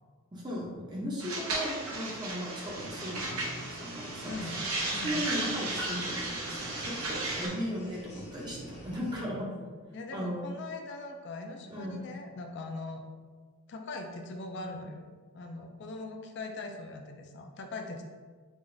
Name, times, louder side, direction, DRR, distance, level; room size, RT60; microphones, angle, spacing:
voice 1, 0.3-4.6 4.9-9.6 10.1-10.4 11.7-12.0, equal, 20° right, -4 dB, 0.6 m, -37 dB
sound 1, 1.2-7.5, right 2 dB, 75° right, 0.7 m, -35 dB
sound 2, 2.6-9.1, equal, 30° left, 0.7 m, -48 dB
voice 2, 4.3-4.6 4.9-5.3 9.9-13.0 13.7-15.1 15.3-18.0, left 2 dB, 50° left, 3 dB, 0.4 m, -41 dB
4.7 x 2.4 x 2.6 m, 1.5 s
head